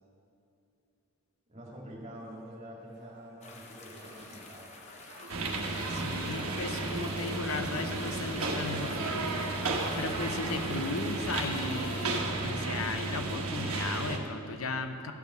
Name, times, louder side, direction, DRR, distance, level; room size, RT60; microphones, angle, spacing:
voice 1, 1.5-4.8, equal, 30° right, -3 dB, 2.0 m, -46 dB
sound 1, 2.1-9.4, right 2 dB, 50° right, 0.9 m, -51 dB
sound 2, 3.4-12.2, left 3 dB, 30° left, 0.8 m, -50 dB
sound 3, 5.3-14.2, right 2 dB, 90° right, 1.2 m, -33 dB
voice 2, 5.9-9.5 10.0-15.1, left 3 dB, 85° left, 7 dB, 0.8 m, -36 dB
14.5 x 5.3 x 6.3 m, 2.8 s
head